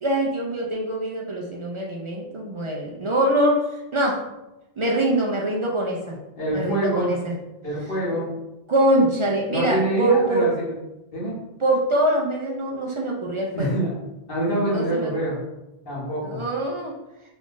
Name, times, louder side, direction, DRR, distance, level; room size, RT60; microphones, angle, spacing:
voice 1, 0.0-3.6 3.9-4.1 4.8-6.2 6.5-7.3 8.1-8.2 8.7-10.4 11.6-13.8 14.7-15.1 16.3-16.9, right 1 dB, 45° right, -1 dB, 0.4 m, -23 dB
voice 2, 6.4-7.1 7.6-8.3 9.5-10.7 11.1-11.3 13.5-13.9 14.3-15.4 15.9-16.4, right 1 dB, 55° left, -8 dB, 1.8 m, -25 dB
3.6 x 2.5 x 3.7 m, 0.98 s
omnidirectional pair, 1.1 m